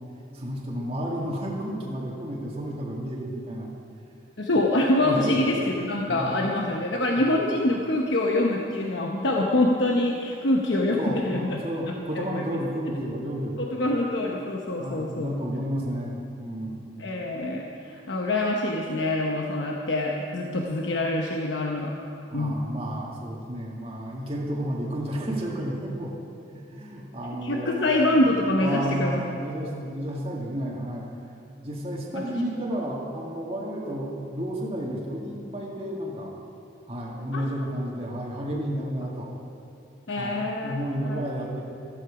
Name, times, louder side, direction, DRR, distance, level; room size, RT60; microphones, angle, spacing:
voice 1, 0.3-3.7 5.0-5.4 6.1-6.5 7.2-7.3 11.0-13.6 14.8-16.8 22.3-26.1 26.5-28.0 28.6-31.1 31.6-36.3 36.9-39.3 40.2-41.6, equal, 30° right, -3 dB, 1.8 m, -31 dB
voice 2, 4.4-12.6 13.6-15.3 17.0-21.9 22.3-22.6 27.4-29.2 32.1-32.2 37.3-37.4 38.5-38.6 40.1-40.8 41.0-41.2, left 1 dB, 70° left, -1 dB, 1.0 m, -25 dB
14.0 x 14.0 x 5.0 m, 2.5 s
head